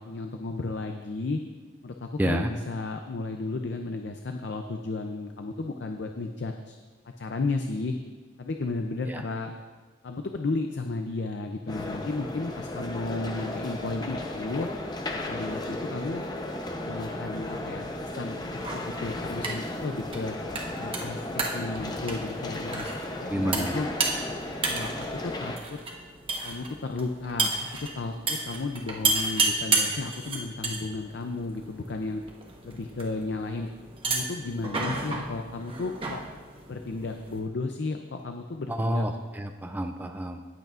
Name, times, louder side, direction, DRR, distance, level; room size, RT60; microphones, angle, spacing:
voice 1, 0.0-1.4 1.8-6.8 7.2-7.9 8.4-9.5 10.0-14.7 15.3-16.2 16.8-20.3 20.8-22.9 23.2-23.9 24.7-25.8 26.4-27.5 27.8-32.2 32.6-33.7 34.0-36.2 36.7-39.1, left 3 dB, 60° left, 5 dB, 0.5 m, -33 dB
voice 2, 2.2-2.5 9.1-9.2 23.3-23.7 38.7-40.4, right 1 dB, 10° right, 6 dB, 0.3 m, -29 dB
sound 1, 11.7-25.6, left 1 dB, 20° left, 0.7 m, -35 dB
sound 2, 18.5-37.4, right 3 dB, 25° right, 1.1 m, -33 dB
18.0 x 8.0 x 2.5 m, 1.4 s
head